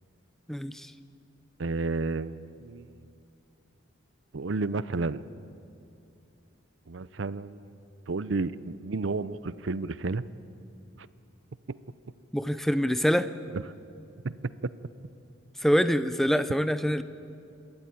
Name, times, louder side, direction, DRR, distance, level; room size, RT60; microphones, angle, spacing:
voice 1, 0.5-0.9 12.3-13.3 15.6-17.0, equal, ahead, 12 dB, 0.6 m, -25 dB
voice 2, 1.6-3.0 4.3-5.2 6.9-7.7 8.1-10.2 11.0-11.1 11.7-11.8 13.5-13.6 14.2-14.3 14.6-14.7, right 3 dB, 65° right, 16 dB, 0.6 m, -31 dB
27.5 x 13.0 x 9.3 m, 2.6 s
head